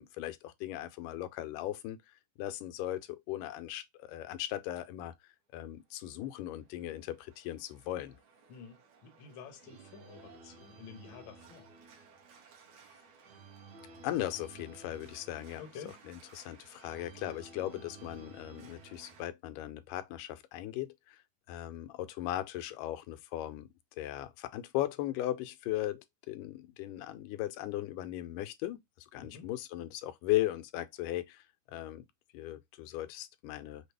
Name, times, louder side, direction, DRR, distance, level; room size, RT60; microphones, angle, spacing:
voice 1, 0.0-2.0 2.4-5.1 5.5-8.2 14.0-15.6 16.1-21.2 21.5-23.7 24.0-32.1 32.3-33.9, left 14 dB, 85° left, 2.2 m, -37 dB
Organ, 6.1-19.2, right 4 dB, 70° right, 2.4 m, -55 dB
voice 2, 8.5-11.7 15.6-16.0 29.2-29.5, left 7 dB, 70° left, 1.1 m, -50 dB
5.8 x 2.3 x 3.3 m
omnidirectional pair, 3.6 m